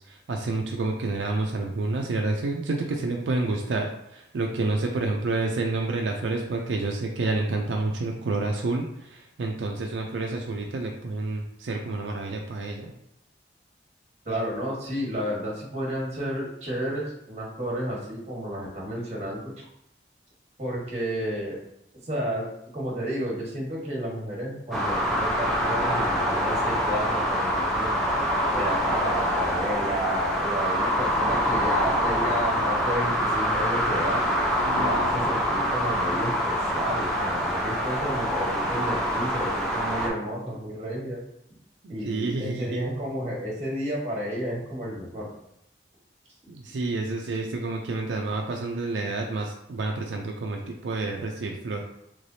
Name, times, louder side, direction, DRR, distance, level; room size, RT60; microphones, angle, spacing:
voice 1, 0.1-12.9 34.6-35.2 41.8-42.8 46.5-51.8, right 2 dB, 85° right, 1 dB, 0.4 m, -29 dB
voice 2, 14.2-19.5 20.6-21.6 22.0-27.9 28.5-34.2 34.7-41.2 41.9-45.3, equal, 35° right, -5 dB, 1.3 m, -31 dB
sound 1, 24.7-40.1, equal, ahead, 0.6 m, -25 dB
3.3 x 3.3 x 2.7 m, 0.80 s
head